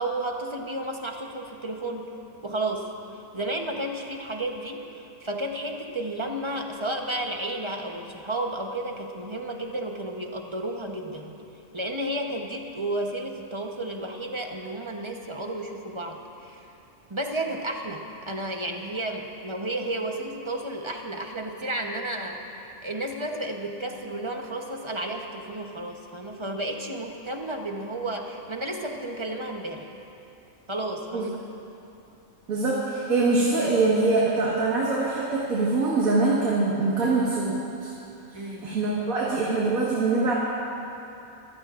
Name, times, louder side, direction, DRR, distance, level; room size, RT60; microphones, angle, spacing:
voice 1, 0.0-2.1 2.4-11.3 11.7-16.7 17.1-29.9 30.7-31.4 38.3-38.7, right 1 dB, 25° right, 2 dB, 0.9 m, -32 dB
voice 2, 32.5-37.6 37.8-37.9 38.3-40.3, right 3 dB, 85° right, -6 dB, 2.1 m, -24 dB
25.0 x 15.5 x 2.5 m, 2.8 s
omnidirectional pair, 1.4 m